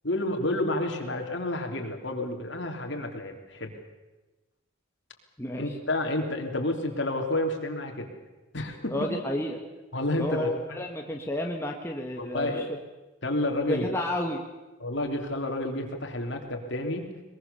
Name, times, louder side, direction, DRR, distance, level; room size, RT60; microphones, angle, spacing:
voice 1, 0.0-3.7 5.6-8.1 8.5-9.1 9.9-10.8 12.2-12.7 13.2-13.9 14.8-17.1, left 1 dB, 60° left, 3 dB, 3.3 m, -30 dB
voice 2, 5.4-5.7 8.9-9.6 10.2-12.6 13.7-14.4, left 1 dB, 10° left, 1 dB, 1.5 m, -31 dB
22.0 x 21.5 x 7.0 m, 1.1 s
head